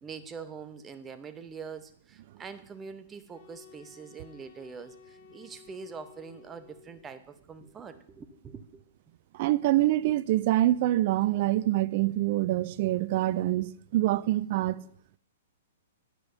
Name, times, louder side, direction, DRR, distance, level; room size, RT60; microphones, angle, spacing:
voice 1, 0.0-8.8 14.8-14.9, right 5 dB, 15° right, 0.7 m, -44 dB
sound 1, 3.3-7.2, left 6 dB, 40° left, 1.8 m, -55 dB
voice 2, 9.3-14.8, right 15 dB, 45° right, 0.4 m, -25 dB
12.5 x 9.7 x 2.7 m
figure-of-eight pair, 110°, 0 cm